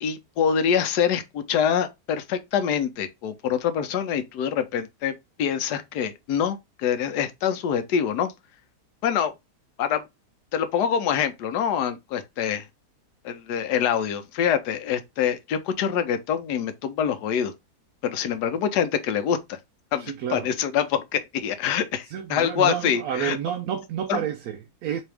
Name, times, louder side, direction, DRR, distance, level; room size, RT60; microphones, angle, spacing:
voice 1, 0.0-8.3 9.0-9.3 9.8-10.0 10.5-12.6 13.2-17.5 18.0-19.6 19.9-23.4 24.1-24.2, left 8 dB, 85° left, 1.2 m, -25 dB
voice 2, 20.0-20.5 22.1-25.0, right 9 dB, 70° right, 1.0 m, -30 dB
4.1 x 2.7 x 3.4 m
omnidirectional pair, 1.7 m